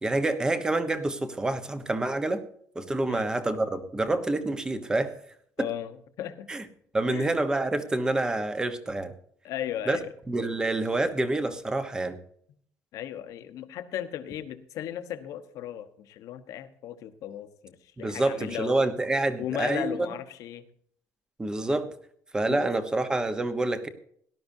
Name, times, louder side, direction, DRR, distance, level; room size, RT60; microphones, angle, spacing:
voice 1, 0.0-2.4 2.7-5.1 5.6-5.7 6.5-6.6 6.9-9.1 9.9-10.0 10.3-12.2 18.0-20.0 21.4-21.9 22.3-23.9, right 2 dB, 10° right, 10 dB, 1.0 m, -27 dB
voice 2, 5.6-6.5 7.1-7.3 9.4-10.1 12.9-18.8 19.4-20.6 22.5-22.6, left 11 dB, 60° left, 9 dB, 1.1 m, -36 dB
18.0 x 12.0 x 2.7 m, 0.64 s
cardioid pair, 160°, 6 cm